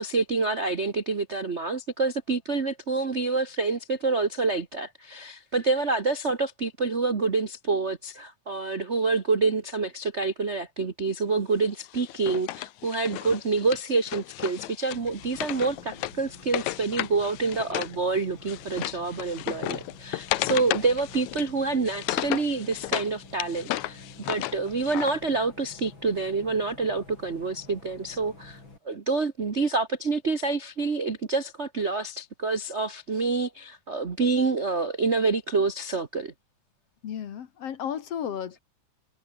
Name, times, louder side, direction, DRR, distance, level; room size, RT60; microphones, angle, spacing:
voice 1, 0.0-28.6 28.8-36.3, right 3 dB, 40° right, 0.9 m, -27 dB
Wood, 11.9-18.0 18.2-23.1 23.4-25.1, left 16 dB, 80° left, 2.2 m, -33 dB
Bus, 14.9-28.8, left 3 dB, 40° left, 6.6 m, -49 dB
voice 2, 37.0-38.6, left 9 dB, 60° left, 2.4 m, -33 dB
omnidirectional pair, 3.4 m